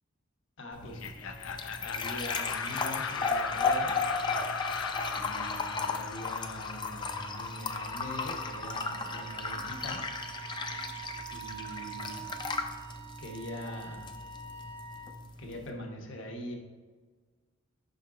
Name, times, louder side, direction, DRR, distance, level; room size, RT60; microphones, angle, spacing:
voice 1, 0.6-1.0 1.8-3.9 5.1-10.0 11.3-12.2 13.2-14.1 15.4-16.5, left 1 dB, 60° left, 1 dB, 1.0 m, -42 dB
sound 1, 0.7-15.7, left 4 dB, 20° left, 0.4 m, -35 dB
Laughter, 0.8-7.6, left 6 dB, 80° left, 0.5 m, -38 dB
Wind instrument woodwind instrument, 5.7-15.2, right 8 dB, 25° right, 0.6 m, -46 dB
5.7 x 5.4 x 3.8 m, 1.5 s
head